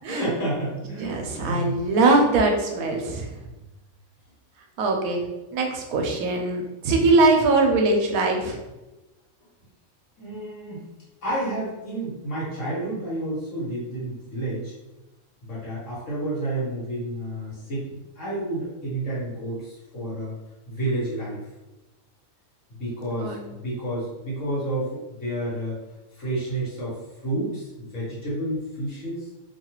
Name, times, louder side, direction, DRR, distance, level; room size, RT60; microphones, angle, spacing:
voice 1, 0.1-1.8 3.4-3.5 10.2-10.8 11.2-14.7 15.4-20.3 20.7-21.4 22.7-25.8 26.1-29.3, right 1 dB, 60° left, -7 dB, 1.4 m, -30 dB
voice 2, 1.0-3.3 4.8-5.2 5.5-8.6 23.2-23.4, right 3 dB, 80° right, 2 dB, 1.0 m, -21 dB
2.7 x 2.3 x 2.9 m, 1.0 s
omnidirectional pair, 1.5 m